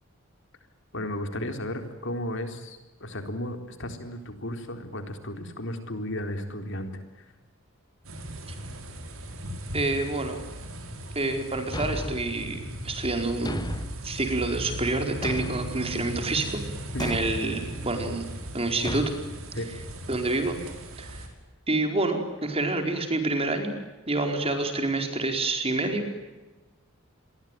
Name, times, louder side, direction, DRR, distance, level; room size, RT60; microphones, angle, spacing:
voice 1, 0.9-7.0 16.9-17.1 19.5-19.7, left 1 dB, 60° left, 7 dB, 4.0 m, -34 dB
sound 1, 8.0-21.3, right 1 dB, 80° right, 5.9 m, -38 dB
voice 2, 9.7-10.4 11.1-13.6 14.0-16.6 17.0-18.3 18.5-19.2 20.1-20.6 21.0-21.3 21.7-23.7 24.1-26.0, right 2 dB, 30° right, 5 dB, 4.8 m, -28 dB
Thump thud, 11.7-12.4 13.5-14.0 15.2-15.8 17.0-17.4 18.9-19.2, left 1 dB, 20° left, 1.2 m, -33 dB
28.0 x 23.0 x 9.3 m, 1.1 s
head